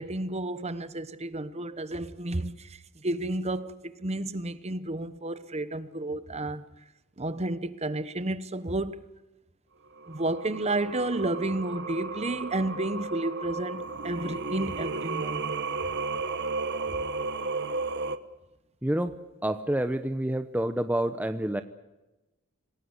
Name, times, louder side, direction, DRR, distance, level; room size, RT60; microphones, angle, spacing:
voice 1, 0.0-6.6 7.2-9.1 10.1-15.5, right 2 dB, 30° right, 1.1 m, -31 dB
Singing, 10.0-18.2, right 3 dB, 55° right, 1.2 m, -33 dB
voice 2, 18.8-19.2 19.4-21.6, right 1 dB, 10° right, 0.9 m, -28 dB
26.5 x 18.5 x 8.2 m
head